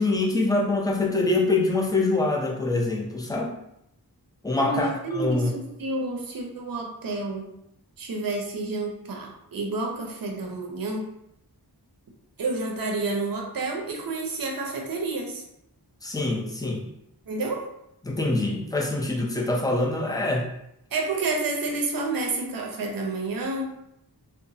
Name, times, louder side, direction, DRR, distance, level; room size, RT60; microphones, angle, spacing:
voice 1, 0.0-3.5 4.4-4.9 5.1-5.5 16.0-16.8 18.0-20.5, left 2 dB, 10° left, -1 dB, 0.5 m, -24 dB
voice 2, 4.6-7.5 8.0-11.0 12.4-15.4 17.3-17.6 20.9-23.7, right 3 dB, 60° right, 0 dB, 0.6 m, -29 dB
2.8 x 2.1 x 2.6 m, 0.79 s
wide cardioid pair, 60°, 41 cm